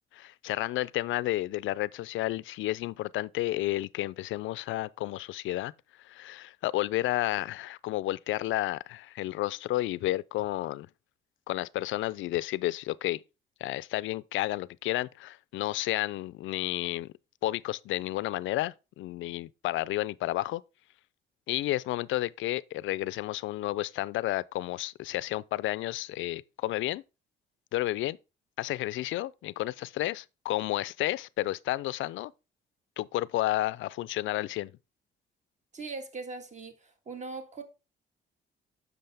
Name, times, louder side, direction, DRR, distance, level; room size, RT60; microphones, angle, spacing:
voice 1, 0.1-5.7 6.1-10.9 11.5-13.2 13.6-17.1 17.4-20.6 21.5-27.0 27.7-28.2 28.6-32.3 33.0-34.7, left 16 dB, 80° left, 0.4 m, -31 dB
voice 2, 35.7-37.6, right 4 dB, 35° right, 1.7 m, -40 dB
7.8 x 6.2 x 3.4 m
cardioid pair, 90°, 20 cm